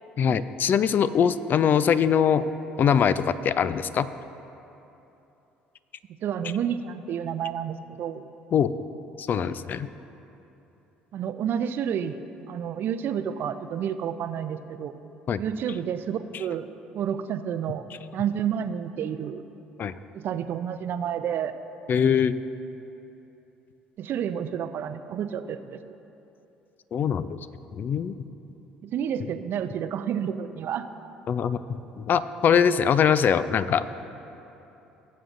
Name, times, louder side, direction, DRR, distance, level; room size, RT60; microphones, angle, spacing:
voice 1, 0.2-2.4 2.8-4.1 8.5-8.7 9.2-9.9 15.3-15.4 19.8-20.0 21.9-22.3 26.9-27.4 27.7-28.1 31.3-34.0, left 7 dB, 45° left, 14 dB, 0.4 m, -22 dB
voice 2, 6.2-8.2 11.1-12.2 12.5-14.9 15.4-16.7 16.9-17.8 18.1-19.4 20.1-21.5 24.0-26.0 28.8-30.9, right 8 dB, 55° right, 10 dB, 0.5 m, -30 dB
18.5 x 7.7 x 2.6 m, 2.9 s
hypercardioid pair, 60°, 4 cm